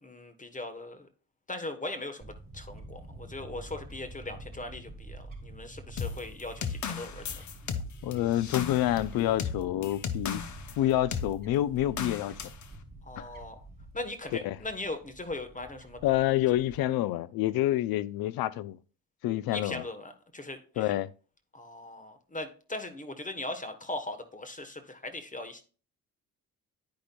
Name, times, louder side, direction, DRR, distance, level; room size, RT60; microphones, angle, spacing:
voice 1, 0.0-1.1 1.5-7.2 13.1-13.6 13.9-16.0 19.5-20.9 21.5-25.6, left 2 dB, 20° left, 1.1 m, -39 dB
Fowl / Bird, 2.2-16.8, right 2 dB, 25° right, 3.2 m, -47 dB
sound 1, 6.0-10.8 11.1-11.3 12.0-12.6, left 7 dB, 55° left, 0.8 m, -35 dB
voice 2, 8.0-10.4 10.8-12.4 13.2-13.3 14.4-14.6 16.0-18.8 19.2-19.8 20.8-21.1, left 14 dB, 85° left, 0.5 m, -28 dB
10.5 x 5.1 x 2.2 m
cardioid pair, 75°, 35 cm